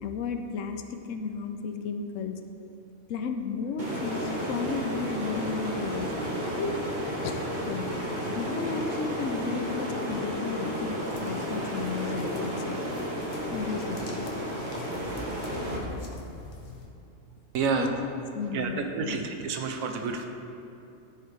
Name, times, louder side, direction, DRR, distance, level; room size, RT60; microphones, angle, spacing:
voice 1, 0.0-2.4 3.1-6.1 6.6-6.8 7.2-8.0 8.3-12.8 13.5-14.0 17.8-18.1 18.3-19.3, left 5 dB, 75° left, 6 dB, 0.9 m, -33 dB
sound 1, 3.8-15.8, equal, 35° right, 1.2 m, -32 dB
sound 2, 10.7-16.8, left 2 dB, 55° left, 1.2 m, -45 dB
voice 2, 17.5-17.9 18.5-20.2, right 5 dB, 90° right, 4 dB, 1.1 m, -29 dB
13.5 x 4.8 x 3.3 m, 2.7 s
omnidirectional pair, 1.4 m